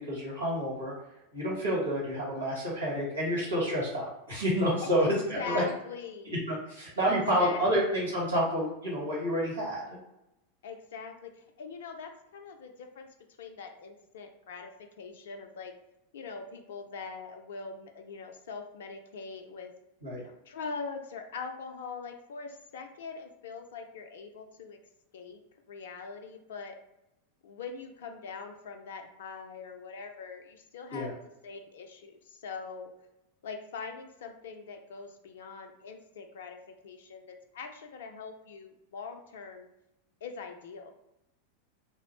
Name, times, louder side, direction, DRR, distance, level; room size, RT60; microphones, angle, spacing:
voice 1, 0.1-0.9 1.3-5.6 6.2-9.8 20.0-20.2 30.9-31.1, equal, 80° right, -6 dB, 1.4 m, -29 dB
voice 2, 4.8-6.3 7.1-7.9 10.6-13.1 13.4-14.7 15.0-15.7 16.1-19.7 20.2-24.8 25.1-25.4 25.7-26.8 27.4-31.1 31.4-32.9 33.4-36.6 36.8-39.7 40.2-40.9, left 5 dB, 60° left, 5 dB, 0.4 m, -42 dB
3.0 x 2.0 x 2.9 m, 0.90 s
figure-of-eight pair, 85°, 0 cm